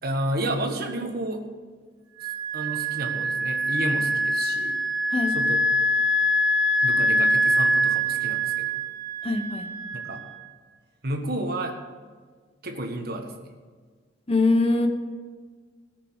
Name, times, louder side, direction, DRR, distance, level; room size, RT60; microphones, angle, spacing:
voice 1, 0.0-1.4 2.5-4.8 5.3-5.6 6.8-8.8 9.9-10.2 11.0-11.8 12.6-13.3, right 1 dB, 60° right, 4 dB, 1.6 m, -31 dB
Wind instrument woodwind instrument, 2.2-10.5, equal, 30° right, 2.5 m, -24 dB
voice 2, 9.2-9.7 14.3-14.9, left 3 dB, 35° left, 6 dB, 1.1 m, -22 dB
17.0 x 6.8 x 6.4 m, 1.5 s
head